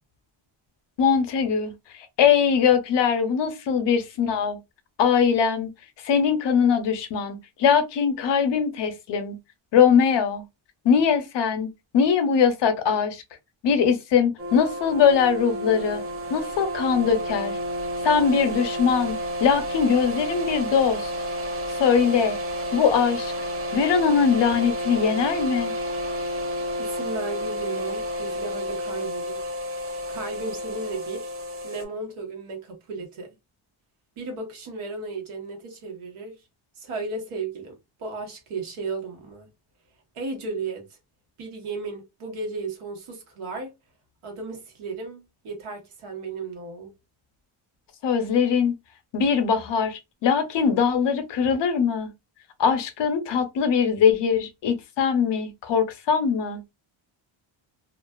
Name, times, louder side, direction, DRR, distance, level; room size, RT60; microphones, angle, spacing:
voice 1, 1.0-1.7 2.2-4.6 5.0-5.7 6.0-9.4 9.7-10.4 10.8-11.7 11.9-13.2 13.6-16.0 16.3-17.6 18.0-21.1 21.8-22.4 22.7-23.3 23.7-25.7 48.0-48.8 49.1-52.1 52.6-56.6, left 7 dB, 60° left, 0.6 m, -21 dB
sound 1, 14.4-31.9, equal, 30° right, 0.4 m, -31 dB
voice 2, 26.8-29.4 30.1-31.3 31.6-33.3 34.2-36.4 36.8-39.5 40.1-40.9 41.4-43.7 44.2-46.9, right 3 dB, 85° right, 1.2 m, -34 dB
2.4 x 2.3 x 2.2 m
wide cardioid pair, 170°, 49 cm